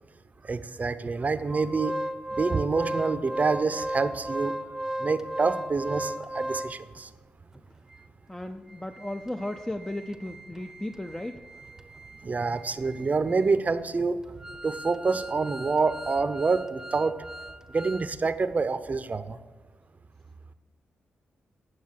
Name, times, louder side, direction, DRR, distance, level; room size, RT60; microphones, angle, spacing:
voice 1, 0.4-1.9 2.3-4.5 5.0-7.1 12.2-14.2 14.6-17.2 17.7-19.4, right 4 dB, 40° right, 12 dB, 0.7 m, -27 dB
Organ, 1.5-7.0 7.5-7.6 7.9-8.0 8.5-18.1 18.4-18.5, right 1 dB, 10° right, 0.8 m, -37 dB
voice 2, 8.3-11.4, left 1 dB, 15° left, 6 dB, 0.6 m, -35 dB
9.3 x 6.4 x 6.6 m, 1.4 s
supercardioid pair, 55°, 4 cm